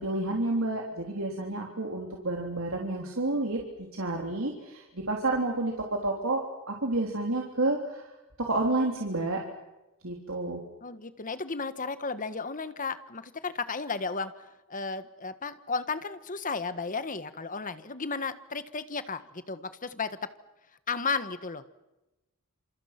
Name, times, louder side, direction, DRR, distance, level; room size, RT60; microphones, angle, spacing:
voice 1, 0.0-8.0 8.4-9.4 10.0-10.6, right 2 dB, 75° right, 0 dB, 3.5 m, -30 dB
voice 2, 10.8-20.2 20.9-21.6, left 4 dB, 40° left, 12 dB, 1.5 m, -34 dB
28.0 x 27.5 x 6.0 m, 1.0 s
head